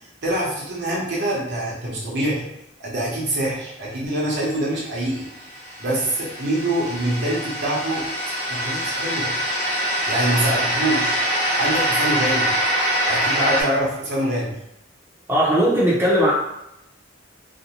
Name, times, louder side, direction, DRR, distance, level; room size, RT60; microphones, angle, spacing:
voice 1, 0.2-2.4 2.8-5.3 5.8-8.1 8.5-9.4 10.1-11.2 11.6-12.5 13.0-14.6, right 1 dB, 60° right, -5 dB, 0.8 m, -25 dB
sound 1, 5.2-13.6, equal, 40° left, 0.8 m, -24 dB
voice 2, 15.3-16.3, equal, 10° right, -7 dB, 0.6 m, -18 dB
2.6 x 2.2 x 2.9 m, 0.83 s
head